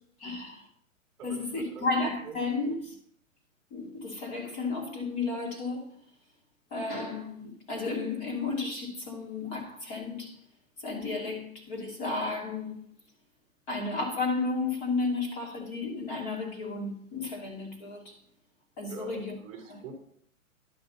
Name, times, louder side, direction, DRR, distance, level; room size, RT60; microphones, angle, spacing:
voice 1, 0.2-0.7 1.2-3.0 3.7-5.8 6.7-10.4 10.8-12.9 13.7-18.2 18.8-19.3 19.7-19.8, left 3 dB, 30° left, 2.5 m, -33 dB
voice 2, 1.2-1.9 2.2-2.4 18.9-20.0, right 5 dB, 10° right, 2.2 m, -45 dB
11.5 x 6.0 x 4.0 m
hypercardioid pair, 165°, 42 cm